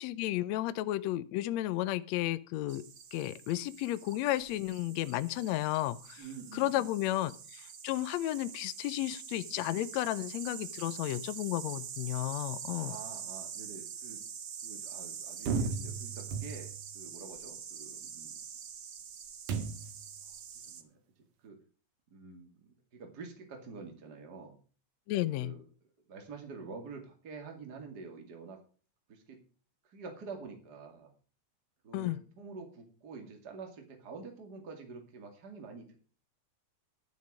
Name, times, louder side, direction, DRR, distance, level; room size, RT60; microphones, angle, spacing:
voice 1, 0.0-2.8 3.1-6.2 6.5-13.0 25.1-25.5 31.9-32.2, left 15 dB, 75° left, 15 dB, 1.7 m, -33 dB
sound 1, 2.7-20.8, right 7 dB, 60° right, 1.1 m, -45 dB
voice 2, 6.2-6.9 12.8-14.2 14.6-18.4 20.3-20.4 20.7-21.0 21.4-21.6 22.1-24.6 25.3-25.6 26.1-28.6 29.1-29.4 29.8-31.1 31.8-36.0, right 4 dB, 35° right, 3 dB, 2.6 m, -47 dB
sound 2, 15.5-16.9 19.5-20.1, right 5 dB, 85° right, 2.8 m, -35 dB
11.5 x 9.5 x 5.0 m, 0.39 s
omnidirectional pair, 3.5 m